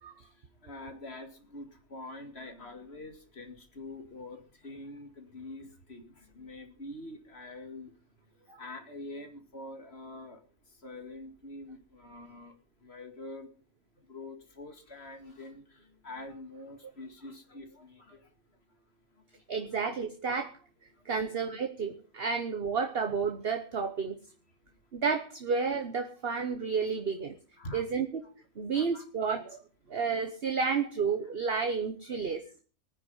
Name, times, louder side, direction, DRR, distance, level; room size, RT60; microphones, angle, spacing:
voice 1, 0.2-7.9 8.6-10.4 10.7-12.5 12.8-13.5 14.1-18.3 20.9-21.4 27.6-28.3 28.7-29.1 29.4-29.5, left 2 dB, 50° left, 6 dB, 2.4 m, -45 dB
voice 2, 19.5-20.5 21.0-24.2 24.9-27.3 27.7-28.2 28.6-29.6 29.9-32.4, right 5 dB, 45° right, 6 dB, 1.3 m, -31 dB
20.0 x 9.6 x 5.6 m, 0.40 s
omnidirectional pair, 1.4 m